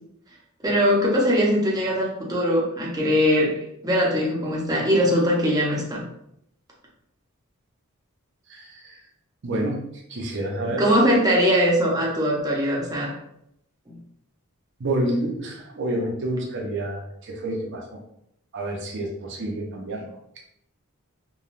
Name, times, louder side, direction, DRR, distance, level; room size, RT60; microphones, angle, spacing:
voice 1, 0.6-6.0 10.8-13.1, equal, 15° right, -3 dB, 0.6 m, -21 dB
voice 2, 8.5-9.0 9.4-10.8 14.8-18.0 18.5-20.2, right 1 dB, 55° right, 0 dB, 0.6 m, -29 dB
3.0 x 2.3 x 2.4 m, 0.75 s
head